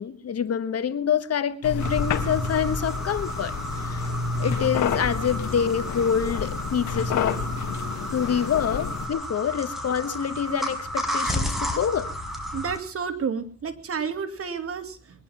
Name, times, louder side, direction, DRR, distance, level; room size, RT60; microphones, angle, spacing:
voice 1, 0.0-4.1 4.4-7.5 8.1-12.1, left 8 dB, 55° left, 12 dB, 1.6 m, -26 dB
sound 1, 1.6-9.1, left 5 dB, 70° left, 2.1 m, -29 dB
sound 2, 1.8-12.8, left 1 dB, ahead, 5.4 m, -32 dB
voice 2, 12.5-15.2, right 6 dB, 50° right, 9 dB, 2.6 m, -31 dB
22.0 x 11.0 x 5.7 m, 0.39 s
cardioid pair, 90°, 30 cm